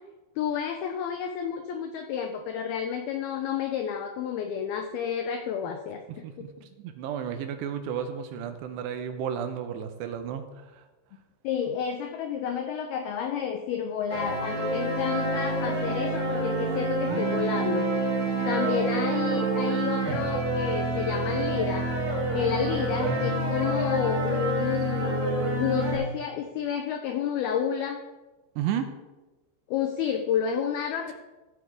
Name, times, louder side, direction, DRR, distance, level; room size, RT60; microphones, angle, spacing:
voice 1, 0.4-6.5 11.4-17.9 18.5-21.9 22.3-25.2 25.6-28.0 29.7-31.1, left 8 dB, 85° left, 5 dB, 2.2 m, -30 dB
voice 2, 6.1-6.5 6.8-10.8 28.6-28.9, right 8 dB, 80° right, 7 dB, 2.8 m, -33 dB
sound 1, 14.1-26.0, right 2 dB, 55° right, 4.7 m, -27 dB
15.5 x 8.0 x 3.5 m, 1.1 s
omnidirectional pair, 5.3 m